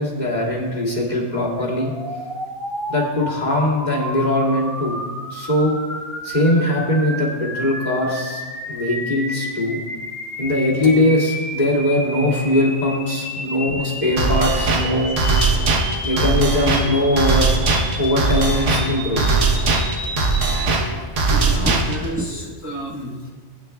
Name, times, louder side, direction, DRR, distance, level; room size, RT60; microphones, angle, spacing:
voice 1, 0.0-1.9 2.9-5.0 5.3-5.8 6.2-8.4 8.7-9.8 10.4-15.2 16.0-17.5 18.0-19.2, left 1 dB, 35° left, -5 dB, 2.6 m, -20 dB
sound 1, 1.7-20.7, equal, ahead, 1.9 m, -31 dB
sound 2, 14.2-22.2, right 3 dB, 85° right, 1.4 m, -20 dB
voice 2, 15.9-16.3 21.3-23.3, equal, 15° right, -4 dB, 1.2 m, -30 dB
20.5 x 9.0 x 2.3 m, 1.4 s
omnidirectional pair, 1.2 m